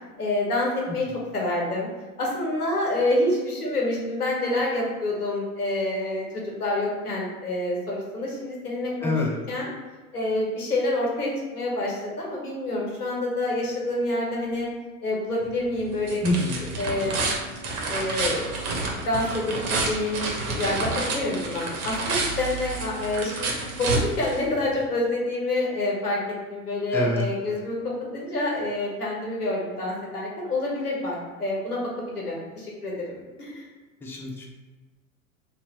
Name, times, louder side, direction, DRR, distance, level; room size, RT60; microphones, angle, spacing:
voice 1, 0.2-1.1 1.3-1.9 2.2-9.2 9.5-9.7 10.1-14.7 15.0-16.2 16.8-17.4 17.9-18.4 19.1-23.5 23.8-31.8 32.1-33.6, left 2 dB, 85° left, -3 dB, 1.3 m, -27 dB
voice 2, 9.0-9.3 16.2-16.6 26.9-27.2 34.0-34.5, left 2 dB, 5° left, -1 dB, 0.6 m, -25 dB
sound 1, 15.4-24.8, right 3 dB, 60° right, 1.1 m, -30 dB
2.8 x 2.8 x 4.3 m, 1.3 s
hypercardioid pair, 85°, 44 cm